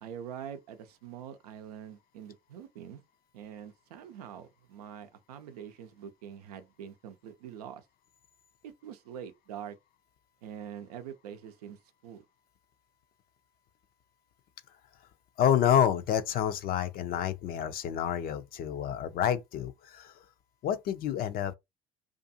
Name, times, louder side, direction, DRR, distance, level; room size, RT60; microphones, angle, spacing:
voice 1, 0.0-3.0 3.3-7.9 8.6-9.8 10.4-12.2, right 9 dB, 85° right, 0.5 m, -44 dB
voice 2, 15.4-20.2 20.6-21.6, left 9 dB, 50° left, 0.4 m, -28 dB
2.5 x 2.4 x 2.6 m
hypercardioid pair, 65°, 19 cm